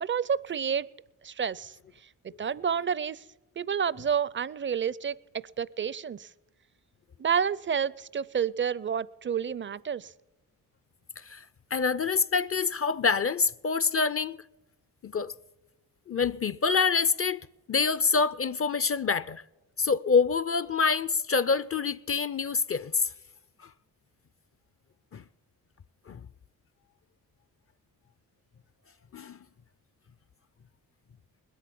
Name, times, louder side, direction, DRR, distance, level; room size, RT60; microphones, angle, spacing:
voice 1, 0.0-0.9 1.2-1.8 2.4-3.2 3.6-5.2 5.6-6.3 7.2-10.1, right 7 dB, 30° right, 0.5 m, -29 dB
voice 2, 11.7-14.4 15.0-15.3 16.1-17.4 17.7-19.4 19.8-23.1 23.6-23.7 25.1-25.2 26.1-26.2 29.1-29.4, left 5 dB, 35° left, 0.5 m, -26 dB
20.5 x 8.5 x 7.0 m
supercardioid pair, 50°, 41 cm